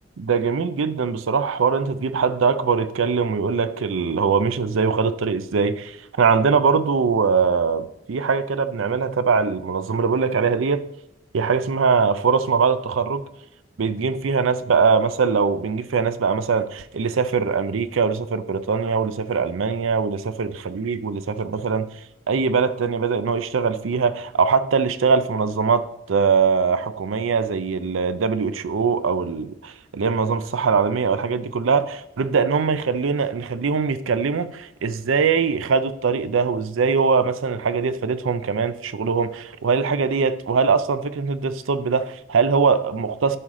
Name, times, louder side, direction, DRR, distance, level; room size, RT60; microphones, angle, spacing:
voice 1, 0.2-10.8 11.3-13.3 13.8-21.9 22.3-43.4, right 5 dB, 85° right, 0.5 m, -22 dB
11.0 x 4.8 x 3.7 m
head